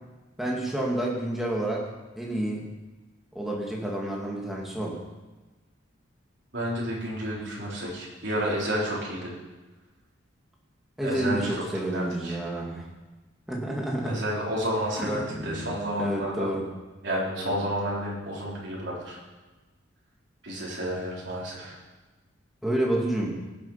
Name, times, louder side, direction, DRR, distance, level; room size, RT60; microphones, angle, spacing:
voice 1, 0.4-1.9 2.2-2.6 3.3-5.0 11.0-12.9 13.5-14.2 15.0-16.7 17.4-17.6 22.6-23.4, right 1 dB, ahead, -3 dB, 2.2 m, -29 dB
voice 2, 6.5-9.3 11.0-12.4 14.0-16.5 17.0-19.2 20.4-21.8, equal, 60° right, -5 dB, 4.2 m, -31 dB
18.5 x 7.4 x 5.8 m, 1.2 s
head